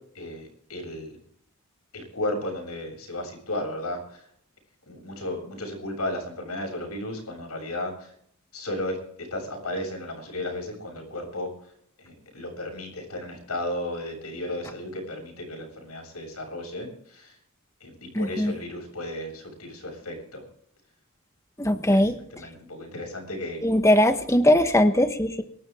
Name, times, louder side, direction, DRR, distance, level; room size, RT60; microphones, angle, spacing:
voice 1, 0.1-1.2 1.9-4.2 4.9-8.1 8.5-11.5 12.0-17.3 17.8-20.4 21.9-23.7, left 1 dB, 80° left, 3 dB, 7.5 m, -34 dB
voice 2, 18.1-18.6 21.6-22.1 23.6-25.4, left 1 dB, 15° left, 8 dB, 1.3 m, -20 dB
24.0 x 12.5 x 3.7 m, 0.65 s
head